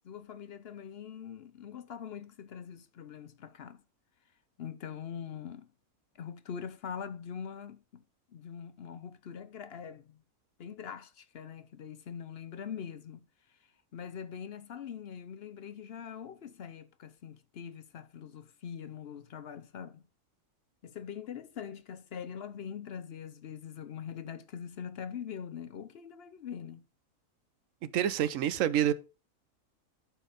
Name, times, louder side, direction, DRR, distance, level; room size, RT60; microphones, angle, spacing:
voice 1, 0.0-3.8 4.6-5.7 6.1-8.0 8.3-10.2 10.6-13.2 13.9-20.0 20.8-26.8, left 7 dB, 55° left, 0.7 m, -43 dB
voice 2, 27.8-28.9, right 10 dB, 65° right, 1.0 m, -27 dB
11.0 x 4.6 x 5.0 m
omnidirectional pair, 1.6 m